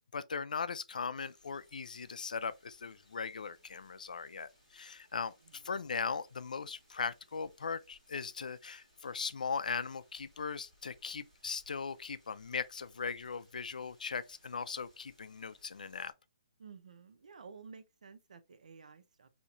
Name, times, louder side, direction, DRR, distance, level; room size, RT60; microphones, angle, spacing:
voice 1, 0.0-16.1, left 5 dB, 85° left, 0.4 m, -39 dB
sound 1, 1.2-16.1, left 1 dB, 10° right, 1.4 m, -68 dB
voice 2, 16.6-19.3, right 5 dB, 65° right, 0.6 m, -53 dB
4.3 x 2.8 x 2.5 m
hypercardioid pair, 175°, 4 cm